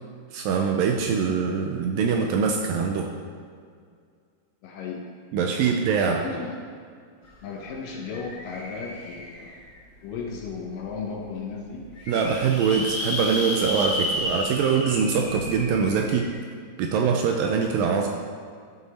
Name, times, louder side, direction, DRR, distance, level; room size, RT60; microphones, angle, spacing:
voice 1, 0.3-3.1 5.3-6.2 12.1-16.3 16.8-18.1, right 6 dB, 80° right, 2 dB, 2.1 m, -23 dB
voice 2, 4.6-5.0 5.7-5.8 6.2-6.7 7.4-9.5 10.0-11.8, left 5 dB, 70° left, 0 dB, 2.2 m, -35 dB
sound 1, 7.2-7.3 7.6-9.7 10.3-10.4 10.8-10.9 11.1-11.2 11.7-16.3, left 1 dB, 30° left, 1.6 m, -32 dB
12.0 x 6.9 x 4.2 m, 2.1 s
omnidirectional pair, 4.5 m